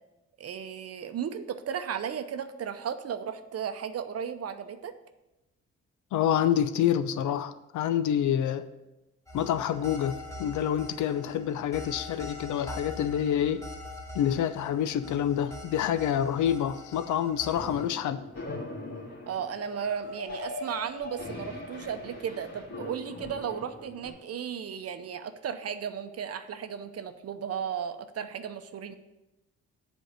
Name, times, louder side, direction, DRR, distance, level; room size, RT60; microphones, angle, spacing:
voice 1, 0.4-4.9 19.3-29.0, right 8 dB, 55° right, 9 dB, 0.7 m, -35 dB
voice 2, 6.1-8.7 9.3-13.6 14.1-18.2, left 9 dB, 75° left, 13 dB, 0.6 m, -27 dB
sound 1, 9.3-17.9, left 1 dB, 10° left, 2.4 m, -43 dB
sound 2, 17.5-24.1, left 2 dB, 55° left, 2.4 m, -41 dB
7.7 x 4.6 x 6.6 m, 0.99 s
cardioid pair, 70°, 29 cm